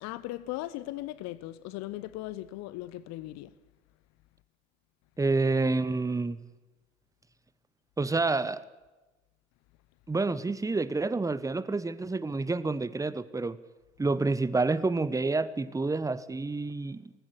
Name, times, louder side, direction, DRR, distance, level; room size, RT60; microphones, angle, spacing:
voice 1, 0.0-3.5, left 16 dB, 50° left, 0.9 m, -38 dB
voice 2, 5.2-6.4 8.0-8.6 10.1-13.6 14.0-17.1, right 3 dB, 10° right, 1.0 m, -28 dB
18.5 x 15.0 x 9.9 m
figure-of-eight pair, 65°, 35 cm